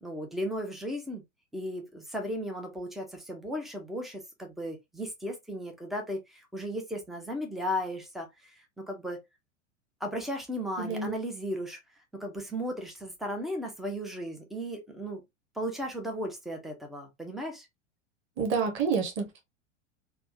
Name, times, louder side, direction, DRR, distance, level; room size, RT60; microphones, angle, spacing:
voice 1, 0.0-1.2 1.5-8.6 8.9-9.2 10.0-11.8 12.2-15.2 15.6-17.7, equal, ahead, 0.3 m, -35 dB
voice 2, 10.8-11.1 18.4-19.4, right 5 dB, 35° right, 1.1 m, -29 dB
3.4 x 2.4 x 2.6 m
figure-of-eight pair, 90°, 37 cm